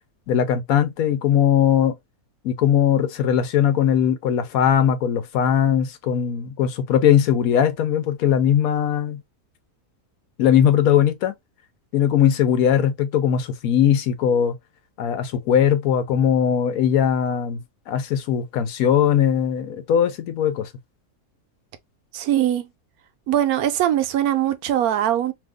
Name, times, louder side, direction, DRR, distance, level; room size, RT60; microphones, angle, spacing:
voice 1, 0.3-1.9 2.4-9.2 10.4-11.3 11.9-14.5 15.0-17.6 17.9-20.7, left 9 dB, 70° left, 1.0 m, -19 dB
voice 2, 22.1-22.7 23.3-25.3, right 11 dB, 75° right, 1.0 m, -21 dB
2.7 x 2.5 x 3.5 m
omnidirectional pair, 1.6 m